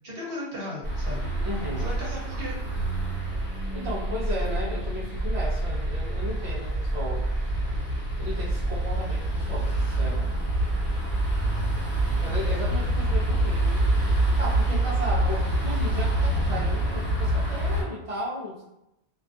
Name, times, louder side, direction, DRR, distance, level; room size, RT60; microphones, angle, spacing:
voice 1, 0.0-1.3 1.8-2.6, left 1 dB, 60° right, -5 dB, 0.9 m, -36 dB
sound 1, 0.8-17.8, right 1 dB, 55° left, 1.3 m, -26 dB
voice 2, 1.4-1.9 3.7-7.3 8.2-10.3 12.2-14.0 14.4-18.7, left 1 dB, 40° right, -6 dB, 0.6 m, -35 dB
2.5 x 2.4 x 2.3 m, 0.87 s
omnidirectional pair, 1.1 m